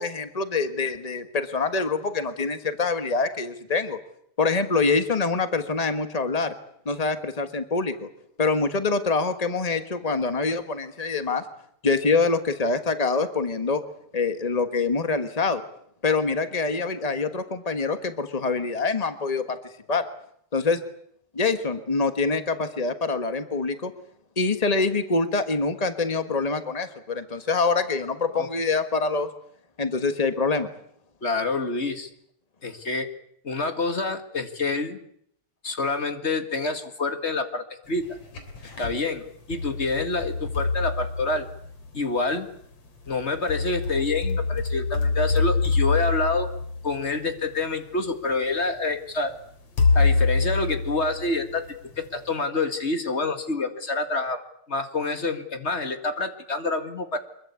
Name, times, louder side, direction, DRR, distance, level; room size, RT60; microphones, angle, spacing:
voice 1, 0.0-4.0 4.4-6.5 6.8-8.1 8.4-11.4 11.8-13.8 14.1-15.6 16.0-19.6 19.9-20.1 20.5-20.8 21.3-23.9 24.4-29.3 29.8-30.7, left 4 dB, 80° left, 8 dB, 0.3 m, -25 dB
voice 2, 31.2-32.1 32.6-33.1 33.4-35.0 35.6-38.1 38.8-41.5 41.9-42.5 43.1-46.5 46.8-49.3 49.9-51.7 52.0-54.4 54.7-57.2, left 3 dB, 25° left, 7 dB, 1.7 m, -27 dB
sound 1, 38.0-39.0 39.5-41.9 43.1-47.5 48.3-48.4 49.8-51.7, left 3 dB, 55° left, 4.4 m, -25 dB
24.5 x 22.5 x 8.4 m, 0.69 s
omnidirectional pair, 3.3 m